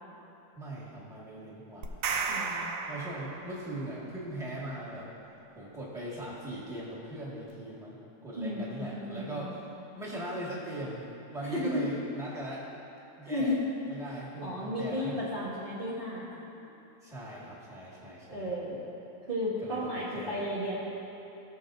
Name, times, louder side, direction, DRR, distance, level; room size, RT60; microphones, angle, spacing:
voice 1, 0.5-2.2 2.9-5.1 5.5-9.6 10.0-12.6 13.2-13.6 13.9-15.3 16.4-16.7 17.0-18.5 19.6-20.4, right 1 dB, ahead, -7 dB, 1.7 m, -40 dB
sound 1, 1.8-3.8, right 5 dB, 65° right, 0.9 m, -34 dB
voice 2, 2.3-2.7 8.4-9.5 11.4-11.8 13.2-13.7 14.4-16.2 18.3-18.8 19.3-20.8, left 1 dB, 35° right, -9 dB, 1.4 m, -33 dB
18.5 x 6.4 x 2.6 m, 2.9 s
omnidirectional pair, 1.7 m